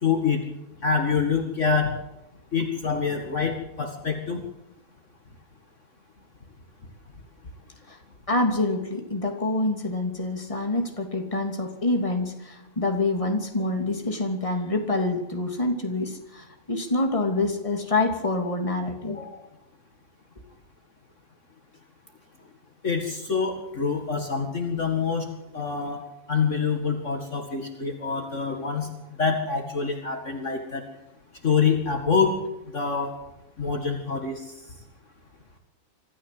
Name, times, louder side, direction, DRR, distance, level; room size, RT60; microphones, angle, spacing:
voice 1, 0.0-0.4 0.8-1.9 2.5-4.4 22.8-25.3 25.5-26.0 26.3-28.9 29.2-30.8 31.4-32.4 32.7-33.1 33.6-34.5, left 5 dB, 50° left, 4 dB, 2.3 m, -26 dB
voice 2, 8.3-19.5, left 2 dB, 20° left, 4 dB, 2.9 m, -26 dB
25.0 x 14.0 x 7.8 m, 0.91 s
omnidirectional pair, 1.7 m